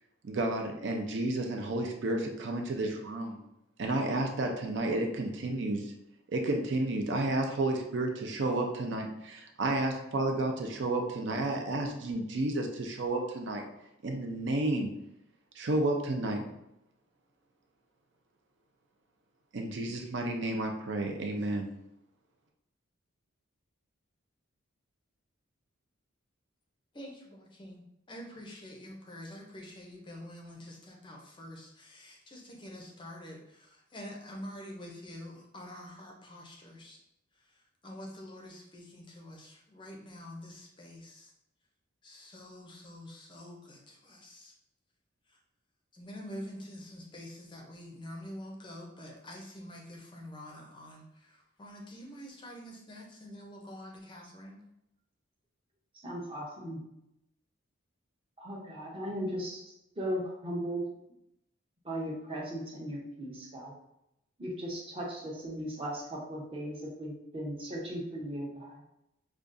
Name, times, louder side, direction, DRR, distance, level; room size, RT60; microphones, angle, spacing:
voice 1, 0.2-3.4 3.8-5.9 6.3-13.6 14.0-14.9 15.6-16.4 19.5-21.7, right 2 dB, 55° right, 2 dB, 0.4 m, -31 dB
voice 2, 26.9-37.0 37.4-41.3 42.0-44.5 45.3-45.4 45.9-54.6, left 1 dB, 25° left, 0 dB, 0.5 m, -47 dB
voice 3, 55.9-56.8 58.4-59.6 60.0-60.8 61.8-63.7 64.4-68.8, equal, 25° right, -2 dB, 0.7 m, -37 dB
5.0 x 2.3 x 2.5 m, 0.83 s
head